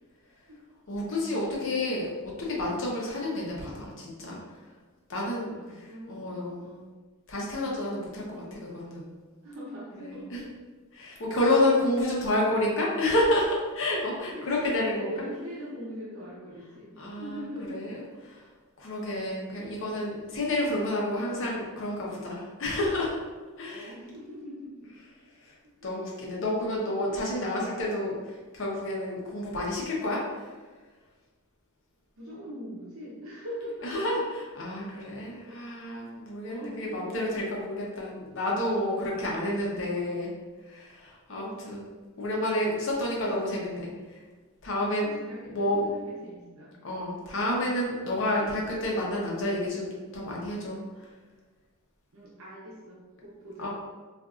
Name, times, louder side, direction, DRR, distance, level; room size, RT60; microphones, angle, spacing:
voice 1, 0.9-4.4 5.1-5.5 6.1-6.7 7.3-9.1 10.1-10.4 10.9-15.1 17.0-17.4 17.7-18.0 18.3-18.4 18.8-23.2 23.6-23.9 25.4-25.5 25.8-30.5 33.8-40.3 40.7-41.9 42.2-44.2 44.6-45.1 45.5-45.8 46.8-50.8 53.6-53.7, left 1 dB, 60° left, -3 dB, 0.8 m, -29 dB
voice 2, 5.3-6.3 6.6-7.0 8.1-8.9 9.4-10.5 14.3-17.9 19.3-19.8 23.7-25.0 25.8-25.9 32.2-34.0 35.4-35.6 36.5-37.0 41.3-41.6 45.0-46.7 52.1-53.7, equal, 70° right, -7 dB, 0.8 m, -42 dB
3.8 x 2.5 x 2.4 m, 1.3 s
head